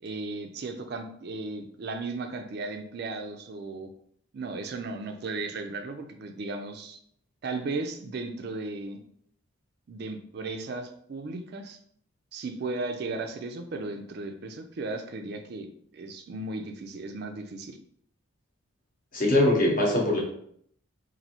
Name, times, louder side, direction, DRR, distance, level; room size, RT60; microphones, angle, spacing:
voice 1, 0.0-3.9 4.3-7.0 7.4-9.0 9.9-11.8 12.3-17.8, right 3 dB, 50° right, 5 dB, 0.4 m, -35 dB
voice 2, 19.1-20.2, left 1 dB, 40° left, -1 dB, 0.9 m, -22 dB
4.1 x 2.6 x 2.8 m, 0.66 s
head